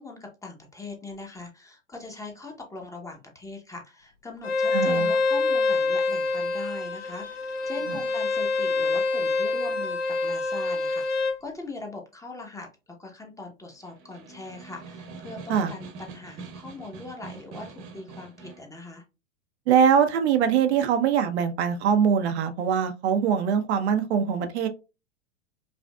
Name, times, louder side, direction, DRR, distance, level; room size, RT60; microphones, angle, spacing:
voice 1, 0.0-12.7 13.0-19.0, left 3 dB, 10° left, 0.9 m, -41 dB
Bowed string instrument, 4.4-11.4, left 3 dB, 75° left, 1.2 m, -26 dB
voice 2, 4.7-5.1 7.9-8.0 15.5-15.7 19.7-24.7, right 7 dB, 60° right, 0.7 m, -22 dB
Snare drum, 13.7-18.7, right 4 dB, 35° right, 1.0 m, -43 dB
5.1 x 2.5 x 2.2 m
hypercardioid pair, 105°, 37 cm